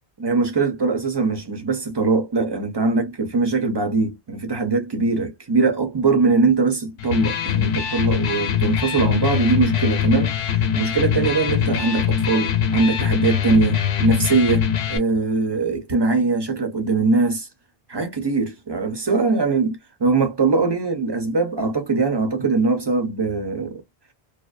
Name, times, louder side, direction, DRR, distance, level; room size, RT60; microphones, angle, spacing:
voice 1, 0.2-10.3 10.7-17.5 17.9-23.8, right 3 dB, 30° right, 0.6 m, -21 dB
Electric guitar, 7.0-15.0, left 8 dB, 90° left, 0.9 m, -22 dB
2.6 x 2.1 x 2.3 m
omnidirectional pair, 1.0 m